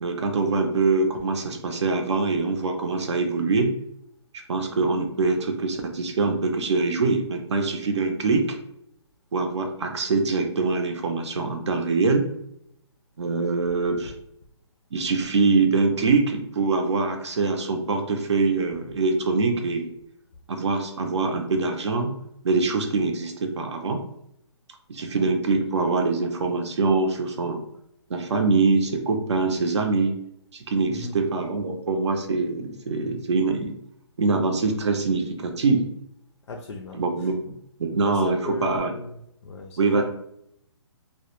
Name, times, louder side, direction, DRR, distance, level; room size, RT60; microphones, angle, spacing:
voice 1, 0.0-3.7 4.5-8.6 9.3-12.3 13.2-14.1 14.9-19.9 20.5-22.1 22.4-24.0 24.9-27.6 28.1-30.2 30.5-33.7 34.2-35.9 37.0-37.4 37.8-39.0 39.8-40.0, right 3 dB, 70° right, 4 dB, 0.5 m, -24 dB
voice 2, 36.5-37.3 37.9-39.2 39.4-40.0, left 3 dB, 80° left, 1 dB, 0.5 m, -36 dB
2.1 x 2.1 x 2.9 m, 0.74 s
hypercardioid pair, 170°, 15 cm